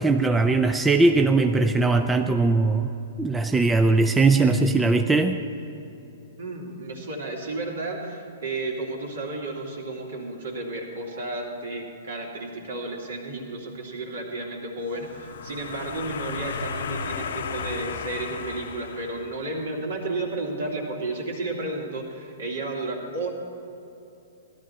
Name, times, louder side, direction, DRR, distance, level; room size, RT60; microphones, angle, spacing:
voice 1, 0.0-2.9 3.2-5.4, right 3 dB, 10° right, 5 dB, 0.5 m, -20 dB
voice 2, 6.4-23.3, right 2 dB, 60° right, 0 dB, 2.6 m, -32 dB
sound 1, 14.9-19.7, left 5 dB, 60° left, 0.8 m, -34 dB
17.0 x 12.5 x 4.2 m, 3.0 s
figure-of-eight pair, 115°, 0 cm